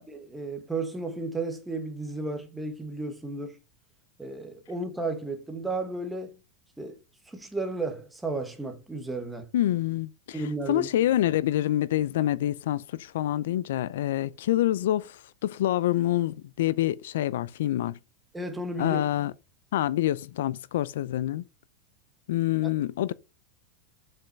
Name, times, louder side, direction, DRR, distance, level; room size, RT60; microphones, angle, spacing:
voice 1, 0.1-3.6 4.2-6.3 6.8-7.0 7.3-9.5 10.3-10.9 18.3-19.0 22.6-22.7, right 2 dB, 5° right, 1.3 m, -33 dB
voice 2, 9.5-18.0 18.8-19.3 19.7-21.4 22.3-23.1, left 13 dB, 80° left, 0.5 m, -26 dB
7.1 x 5.6 x 5.2 m
supercardioid pair, 175°, 0 cm